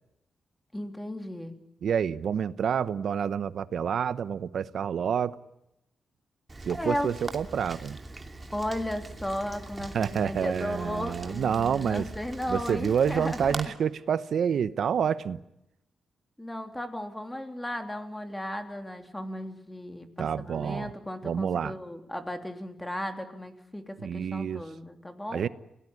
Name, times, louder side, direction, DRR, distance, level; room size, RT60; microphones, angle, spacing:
voice 1, 0.7-1.5 6.7-7.1 8.5-13.6 16.4-25.5, left 1 dB, 10° left, 3.3 m, -35 dB
voice 2, 1.8-5.4 6.6-8.0 9.9-12.0 12.5-15.4 20.2-20.9 21.2-21.7 24.0-24.6 25.3-25.5, right 7 dB, 70° right, 1.0 m, -28 dB
Rain, 6.5-13.7, right 2 dB, 25° right, 2.7 m, -42 dB
28.0 x 18.5 x 9.9 m
cardioid pair, 85°, 0 cm